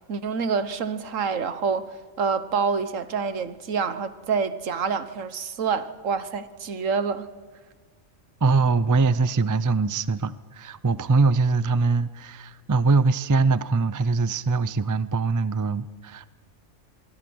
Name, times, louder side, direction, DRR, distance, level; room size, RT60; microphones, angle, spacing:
voice 1, 0.1-7.3, right 5 dB, 75° right, 1.5 m, -27 dB
voice 2, 8.4-16.3, right 4 dB, 30° right, 0.3 m, -22 dB
24.5 x 23.5 x 6.3 m
omnidirectional pair, 1.4 m